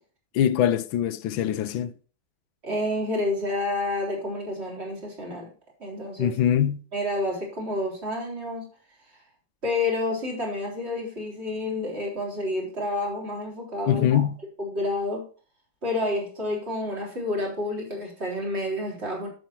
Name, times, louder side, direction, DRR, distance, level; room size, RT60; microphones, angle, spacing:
voice 1, 0.3-1.9 6.2-6.8 13.9-14.4, left 10 dB, 80° left, 1.4 m, -23 dB
voice 2, 2.6-5.5 5.8-6.4 6.9-8.7 9.6-14.2 14.6-15.2 15.8-19.3, left 2 dB, 30° right, 3.9 m, -29 dB
11.0 x 7.9 x 3.0 m
omnidirectional pair, 2.2 m